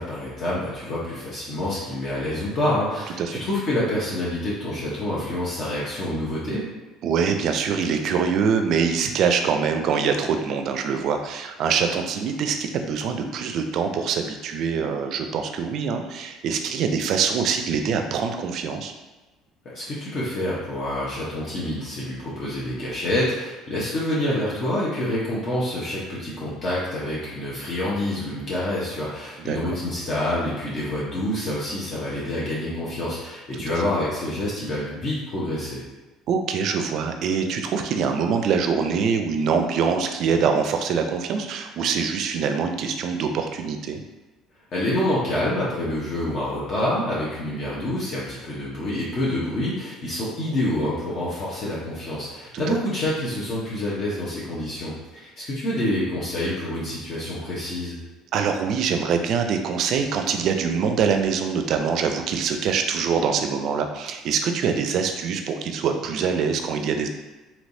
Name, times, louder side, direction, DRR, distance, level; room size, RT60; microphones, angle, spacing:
voice 1, 0.0-6.7 19.6-35.8 44.7-58.0, left 1 dB, 45° left, -7 dB, 0.8 m, -27 dB
voice 2, 7.0-18.9 29.5-29.6 33.7-33.8 36.3-44.0 52.5-52.8 58.3-67.1, right 6 dB, 60° right, 6 dB, 0.4 m, -24 dB
3.3 x 2.9 x 2.6 m, 1.2 s
supercardioid pair, 100°, 0 cm